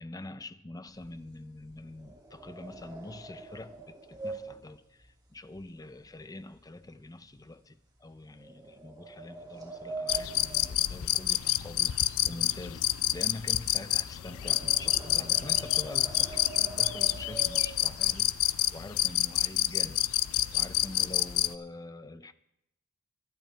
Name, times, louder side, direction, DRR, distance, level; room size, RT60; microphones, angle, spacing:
voice 1, 0.0-18.4 18.7-20.1 20.5-22.3, left 2 dB, 15° left, 0.6 m, -45 dB
sound 1, 0.9-6.2 6.5-6.9 7.4-7.5 8.3-11.6 11.9-18.2 18.8-18.9 19.2-19.4 19.8-20.4, right 3 dB, 20° right, 2.5 m, -44 dB
sound 2, 10.1-21.5, left 14 dB, 70° left, 0.4 m, -28 dB
21.5 x 10.5 x 3.4 m
head